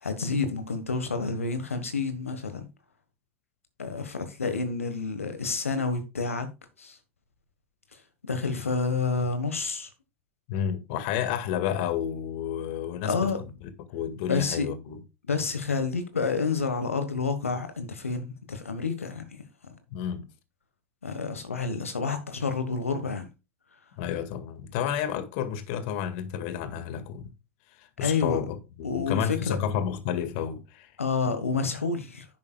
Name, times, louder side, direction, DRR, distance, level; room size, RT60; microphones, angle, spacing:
voice 1, 0.0-2.7 3.8-6.5 6.8-7.0 8.3-9.9 13.0-13.4 14.3-14.7 15.3-19.4 21.0-23.3 28.0-28.4 28.8-29.6 31.0-32.2, left 4 dB, 85° left, 1.3 m, -29 dB
voice 2, 10.5-15.0 19.9-20.2 24.0-27.3 27.8-30.9, left 9 dB, 60° left, 1.8 m, -31 dB
11.0 x 8.5 x 2.3 m
hypercardioid pair, 85°, 7 cm